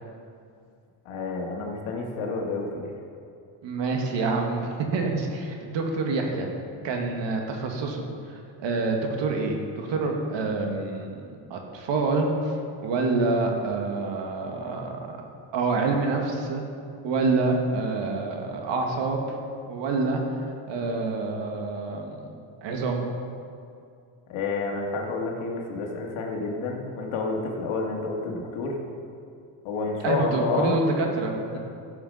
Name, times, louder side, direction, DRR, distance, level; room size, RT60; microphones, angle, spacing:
voice 1, 1.1-2.9 24.3-28.8 29.6-30.8, left 3 dB, 80° left, 0 dB, 2.2 m, -29 dB
voice 2, 3.6-6.5 6.8-8.0 8.6-12.3 12.8-15.1 15.5-16.6 17.0-19.2 19.7-22.2 22.6-23.0 30.0-31.4, right 3 dB, 60° right, 2 dB, 1.9 m, -27 dB
14.5 x 7.1 x 5.5 m, 2.5 s
cardioid pair, 135°, 48 cm